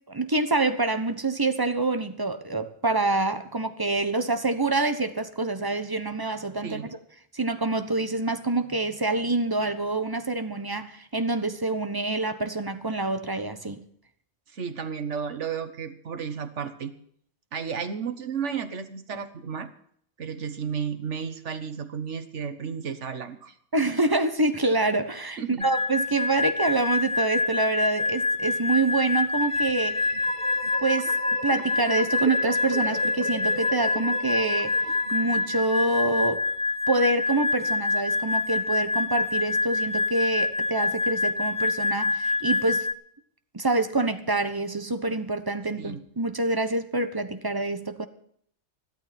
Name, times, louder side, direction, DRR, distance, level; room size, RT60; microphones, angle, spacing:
voice 1, 0.1-7.0 7.3-13.8 23.7-30.0 30.8-31.1 31.4-34.7 35.1-36.4 36.9-42.9 43.5-48.1, right 2 dB, 20° right, 9 dB, 1.1 m, -26 dB
voice 2, 14.5-16.9 17.5-19.7 20.2-23.5 25.4-25.7 45.8-46.0, right 6 dB, 80° right, 9 dB, 1.6 m, -33 dB
sound 1, 25.6-42.9, left 3 dB, 25° left, 0.4 m, -26 dB
sound 2, 29.4-36.2, right 2 dB, 50° right, 2.2 m, -37 dB
14.5 x 12.5 x 6.0 m, 0.64 s
omnidirectional pair, 1.2 m